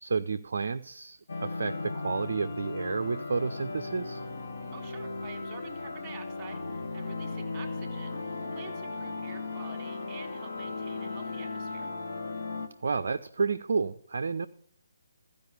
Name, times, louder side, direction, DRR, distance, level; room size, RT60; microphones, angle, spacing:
voice 1, 0.0-4.2 12.8-14.5, right 4 dB, 55° right, 9 dB, 0.4 m, -31 dB
sound 1, 1.3-12.7, left 3 dB, 55° left, 1.0 m, -36 dB
voice 2, 4.7-11.9, right 7 dB, 20° right, 6 dB, 1.5 m, -49 dB
14.5 x 5.1 x 7.9 m, 0.73 s
figure-of-eight pair, 140°, 0 cm